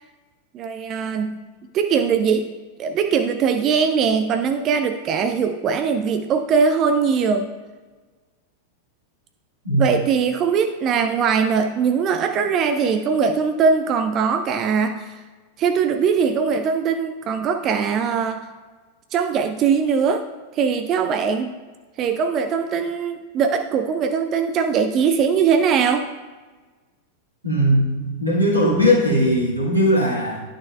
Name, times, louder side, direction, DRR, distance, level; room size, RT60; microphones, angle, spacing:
voice 1, 0.5-1.4 1.7-2.4 2.8-7.5 9.8-15.2 15.6-18.5 19.1-20.2 20.5-21.5 22.0-26.1, right 6 dB, 35° right, 7 dB, 0.4 m, -21 dB
voice 2, 27.4-30.4, equal, 85° right, -4 dB, 2.1 m, -19 dB
11.0 x 6.4 x 2.4 m, 1.3 s
figure-of-eight pair, 90°, 0 cm